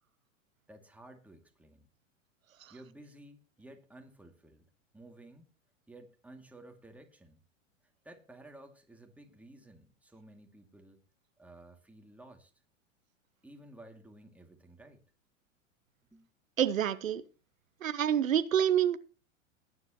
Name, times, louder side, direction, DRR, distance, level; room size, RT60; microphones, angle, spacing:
voice 1, 0.7-1.9 2.7-4.7 4.9-5.5 5.9-7.4 8.0-11.0 11.4-12.5 13.4-15.0 16.1-16.3, right 1 dB, 5° right, 2.5 m, -54 dB
voice 2, 16.6-17.2 17.8-19.0, right 9 dB, 85° right, 0.8 m, -27 dB
19.0 x 9.8 x 3.1 m
hypercardioid pair, 100°, 39 cm